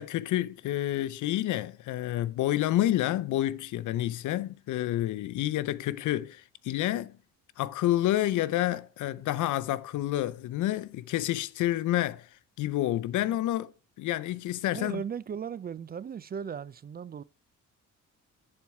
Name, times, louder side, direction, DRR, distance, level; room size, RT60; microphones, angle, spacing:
voice 1, 0.0-7.1 7.6-12.3 12.6-13.7 14.0-15.0, left 14 dB, 75° left, 0.6 m, -29 dB
voice 2, 14.7-17.2, right 7 dB, 30° right, 0.4 m, -37 dB
10.5 x 4.5 x 4.6 m
cardioid pair, 90°, 30 cm